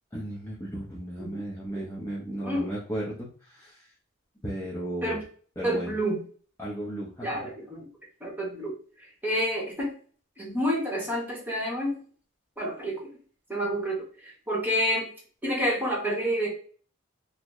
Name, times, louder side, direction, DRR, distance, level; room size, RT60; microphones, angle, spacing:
voice 1, 0.1-3.3 4.4-5.2 5.6-5.9 6.6-7.3, right 1 dB, 10° left, -7 dB, 0.6 m, -34 dB
voice 2, 2.4-2.7 5.0-5.2 5.6-6.2 7.2-7.9 8.2-8.7 9.2-9.9 10.4-12.0 12.6-13.1 13.5-15.1 15.4-16.5, equal, 10° right, -3 dB, 1.0 m, -29 dB
3.9 x 2.0 x 3.0 m, 0.43 s
head